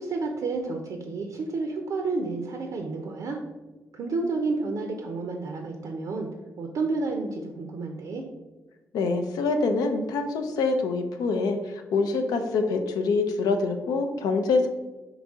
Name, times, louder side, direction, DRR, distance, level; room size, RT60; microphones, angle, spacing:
voice 1, 0.0-3.4 3.9-6.3 6.6-8.2, right 3 dB, 65° right, 3 dB, 0.5 m, -30 dB
voice 2, 8.9-11.6 11.9-14.7, left 3 dB, 80° left, 6 dB, 0.5 m, -25 dB
4.0 x 2.8 x 3.5 m, 1.1 s
supercardioid pair, 55°, 6 cm